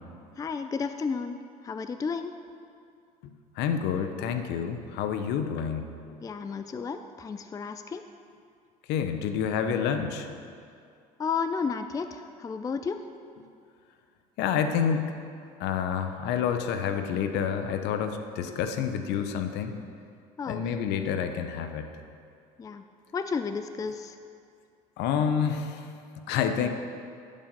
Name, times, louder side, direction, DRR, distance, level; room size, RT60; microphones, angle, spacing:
voice 1, 0.4-1.4 1.6-2.3 6.2-8.0 11.2-13.0 20.4-20.6 22.6-22.8 23.1-24.2, left 5 dB, 20° left, 9 dB, 0.4 m, -32 dB
voice 2, 3.6-5.9 8.9-10.3 14.4-15.1 15.6-19.8 20.5-21.9 25.0-25.9 26.3-26.7, left 7 dB, 60° left, 8 dB, 0.8 m, -28 dB
11.0 x 5.3 x 5.3 m, 2.4 s
hypercardioid pair, 70°, 20 cm